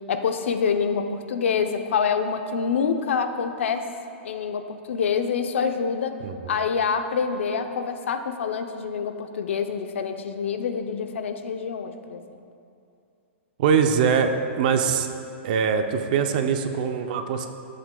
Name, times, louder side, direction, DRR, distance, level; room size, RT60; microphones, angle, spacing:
voice 1, 0.1-3.9 4.2-6.2 6.5-12.4, left 6 dB, 80° left, 7 dB, 0.6 m, -26 dB
voice 2, 6.2-6.5 13.6-15.1 15.4-17.5, right 6 dB, 40° right, 7 dB, 0.5 m, -22 dB
13.5 x 7.6 x 2.3 m, 2.6 s
hypercardioid pair, 165°, 7 cm